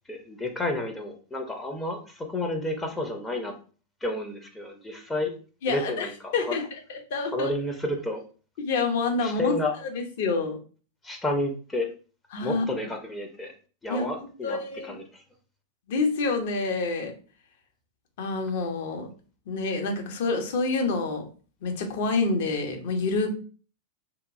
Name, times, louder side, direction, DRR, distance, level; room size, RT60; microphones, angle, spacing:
voice 1, 0.1-3.5 4.0-5.3 5.7-6.6 7.3-8.2 9.2-9.8 11.0-11.9 12.4-13.5 13.8-15.2, left 2 dB, 10° left, 3 dB, 0.5 m, -31 dB
voice 2, 5.6-6.1 6.3-7.5 8.6-9.6 9.9-10.6 12.3-12.7 13.9-14.1 14.4-15.0 15.9-17.1 18.2-19.1 19.5-21.3 21.6-23.3, left 3 dB, 55° left, 4 dB, 0.7 m, -27 dB
2.9 x 2.2 x 2.5 m, 0.38 s
figure-of-eight pair, 90°, 0 cm